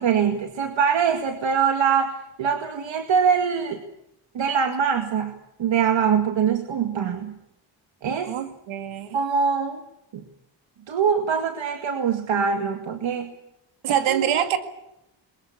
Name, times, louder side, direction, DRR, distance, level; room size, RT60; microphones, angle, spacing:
voice 1, 0.0-3.8 4.3-7.3 8.0-8.3 9.1-9.8 10.1-10.2 10.9-13.3 13.9-14.3, right 7 dB, 65° right, 6 dB, 2.1 m, -23 dB
voice 2, 8.2-9.2 13.8-14.6, right 10 dB, 90° right, 7 dB, 2.2 m, -25 dB
22.0 x 21.0 x 8.6 m, 0.86 s
supercardioid pair, 60°, 48 cm